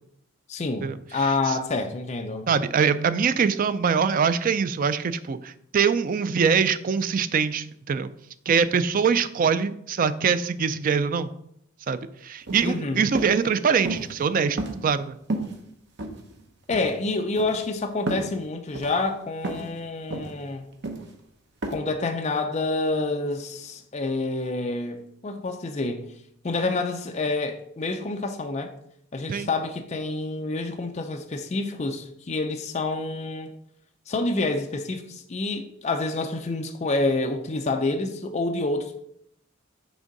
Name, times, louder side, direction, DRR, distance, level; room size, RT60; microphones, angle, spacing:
voice 1, 0.5-2.5 12.6-13.1 16.7-20.7 21.7-26.1 26.4-28.7 29.1-33.5 34.1-39.0, left 3 dB, 35° left, 0.5 m, -28 dB
voice 2, 2.5-8.1 8.5-11.3 11.9-14.6 14.8-15.2 29.3-29.5, right 6 dB, 40° right, 0.3 m, -23 dB
sound 1, 12.4-12.7 13.2-13.4 13.8-14.2 14.6-15.0 15.3-15.6 16.0-16.4 16.7-16.9 17.4-17.6 18.1-18.3 18.8-19.0 19.4-19.7 20.1-20.4 20.8-21.1 21.6-21.7, right 2 dB, 55° right, 0.8 m, -31 dB
6.2 x 3.6 x 5.2 m
head